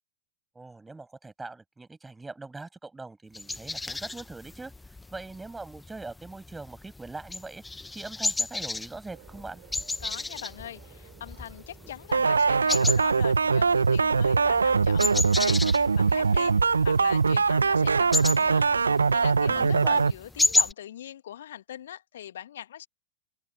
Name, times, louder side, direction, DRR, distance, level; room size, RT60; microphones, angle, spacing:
voice 1, 0.5-4.7 5.1-7.6 7.9-9.6 19.5-20.0, right 3 dB, 10° right, 8.0 m, -41 dB
sound 1, 3.3-20.7, left 2 dB, 10° left, 1.4 m, -33 dB
sound 2, 9.1-18.9, right 29 dB, 45° right, 7.2 m, -55 dB
voice 2, 10.0-22.9, left 11 dB, 60° left, 2.2 m, -41 dB
sound 3, 12.1-20.1, right 5 dB, 75° right, 1.1 m, -22 dB
open air
figure-of-eight pair, 90°, 0 cm